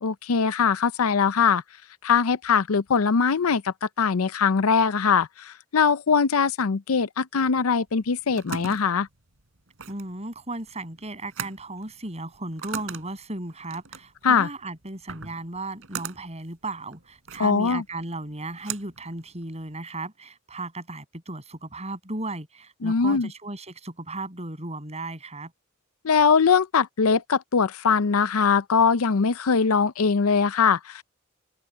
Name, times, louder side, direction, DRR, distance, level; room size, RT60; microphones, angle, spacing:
voice 1, 0.0-1.6 2.0-9.1 14.2-14.5 17.4-17.8 22.8-23.3 26.0-31.0, left 5 dB, 80° left, 0.6 m, -21 dB
sound 1, 7.9-19.8, right 6 dB, 70° right, 3.7 m, -40 dB
voice 2, 9.9-25.5, right 2 dB, 30° right, 7.7 m, -35 dB
head